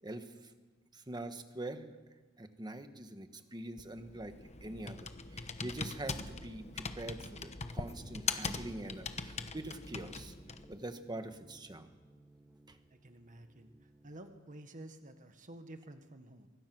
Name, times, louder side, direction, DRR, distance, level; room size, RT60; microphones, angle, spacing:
voice 1, 0.0-0.5 0.9-2.0 2.4-4.3 4.6-10.3 10.7-11.9 12.7-12.8, right 1 dB, 20° right, 8 dB, 1.4 m, -44 dB
Computer keyboard, 3.8-10.8, left 4 dB, 30° left, 1.1 m, -41 dB
sound 1, 7.4-14.4, right 1 dB, 5° right, 1.5 m, -63 dB
voice 2, 12.9-16.5, right 1 dB, 40° right, 7 dB, 1.5 m, -51 dB
24.0 x 23.5 x 6.1 m, 1.3 s
head